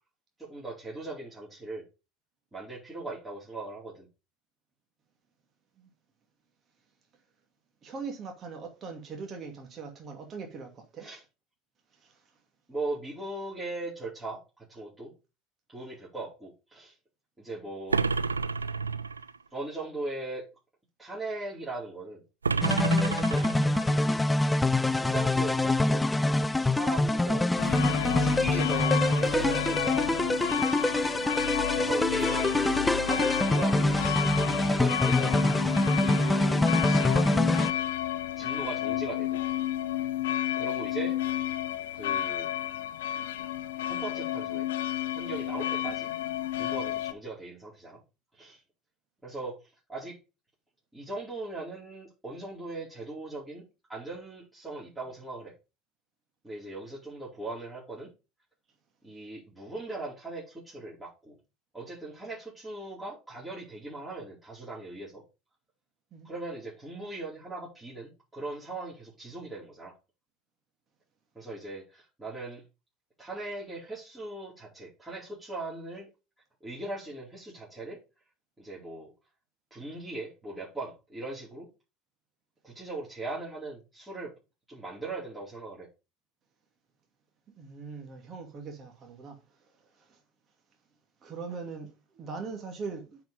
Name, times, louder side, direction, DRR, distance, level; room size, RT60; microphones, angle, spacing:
voice 1, 0.4-1.8 2.5-4.1 11.0-11.2 12.7-15.1 15.7-16.9 17.4-18.0 19.5-20.4 21.0-22.2 23.1-23.5 23.8-24.2 25.0-26.0 26.5-27.5 28.2-30.0 31.7-33.9 34.6-35.4 36.0-37.1 38.4-39.4 40.5-41.2 41.9-42.5 43.9-44.7 45.2-46.1 46.6-48.0 48.4-48.6 49.2-49.6 49.9-50.2 50.9-53.6 53.9-55.5 56.4-58.1 59.0-61.3 61.7-65.2 66.2-69.9 71.3-72.6 73.2-76.1 76.6-78.0 78.6-79.1 79.7-81.7 82.6-84.3 84.7-85.9, right 2 dB, 10° right, 4.4 m, -39 dB
voice 2, 7.8-11.1 30.7-30.8 66.1-66.3 87.6-89.4 91.2-91.9 92.1-93.2, right 4 dB, 40° right, 2.3 m, -40 dB
sound 1, 17.9-19.4 22.4-23.9, right 5 dB, 90° right, 0.3 m, -29 dB
sound 2, 22.6-37.7, left 2 dB, 10° left, 0.5 m, -25 dB
sound 3, 27.6-47.1, left 12 dB, 70° left, 0.6 m, -31 dB
9.1 x 4.9 x 5.2 m
figure-of-eight pair, 70°, 0 cm